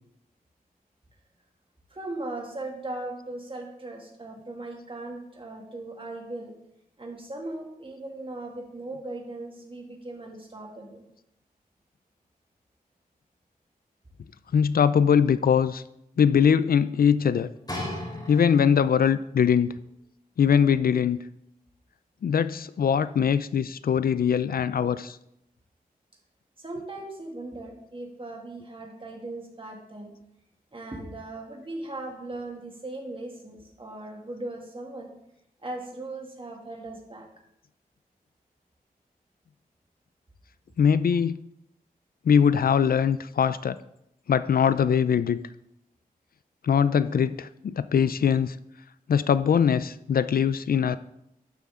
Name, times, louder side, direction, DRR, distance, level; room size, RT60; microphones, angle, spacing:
voice 1, 1.9-6.5 7.0-11.0 26.6-30.1 30.7-35.1 35.6-37.3, right 2 dB, 35° right, 0 dB, 2.3 m, -38 dB
voice 2, 14.5-15.8 16.2-17.5 18.3-19.7 20.4-21.2 22.2-25.2 40.8-41.4 42.3-43.8 44.3-45.4 46.6-48.6 49.1-51.0, left 7 dB, 70° left, 15 dB, 0.4 m, -22 dB
sound 1, 17.7-19.0 19.7-19.8, left 1 dB, 25° left, 3.3 m, -35 dB
11.5 x 7.3 x 3.7 m, 0.79 s
wide cardioid pair, 90°, 16 cm